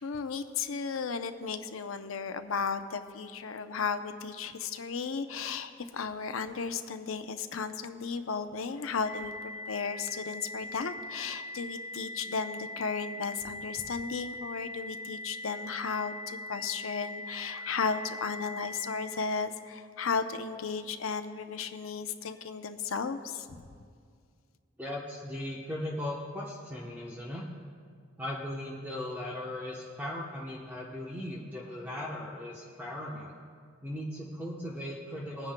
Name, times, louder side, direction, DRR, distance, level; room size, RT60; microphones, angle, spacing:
voice 1, 0.0-23.6, left 5 dB, 80° left, 8 dB, 0.6 m, -35 dB
sound 1, 9.0-19.0, left 1 dB, 55° right, 3.1 m, -41 dB
voice 2, 24.8-27.5 28.2-33.3 33.8-35.5, left 1 dB, 10° right, -5 dB, 0.9 m, -38 dB
22.0 x 9.7 x 2.2 m, 2.1 s
head